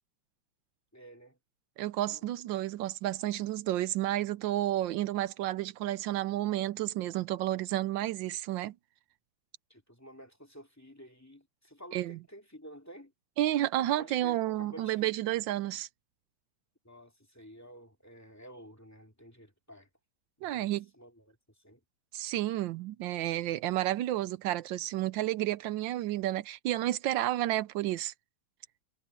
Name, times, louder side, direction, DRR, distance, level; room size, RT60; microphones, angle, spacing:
voice 1, 0.9-1.4 2.1-2.6 9.7-13.1 13.8-15.2 16.8-19.9 20.4-21.8, right 1 dB, 10° left, 2.4 m, -51 dB
voice 2, 1.8-8.7 11.9-12.2 13.4-15.9 20.4-20.8 22.1-28.1, right 14 dB, 85° right, 1.3 m, -31 dB
omnidirectional pair, 2.0 m